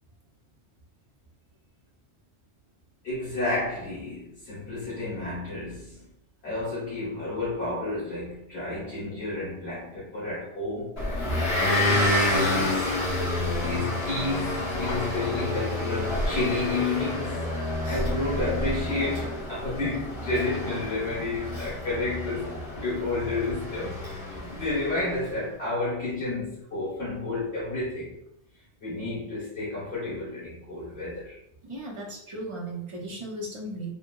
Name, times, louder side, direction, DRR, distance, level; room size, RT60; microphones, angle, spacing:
voice 1, 3.0-6.0 6.4-13.0 13.3-17.4 17.9-22.5 22.8-24.0 24.3-28.2 28.8-31.4, left 2 dB, 65° left, -10 dB, 1.2 m, -31 dB
Motor vehicle (road) / Engine, 11.0-25.2, left 1 dB, 25° left, 1.1 m, -29 dB
voice 2, 31.6-33.9, right 1 dB, 45° right, -2 dB, 0.4 m, -36 dB
3.1 x 2.0 x 2.2 m, 0.79 s
omnidirectional pair, 1.2 m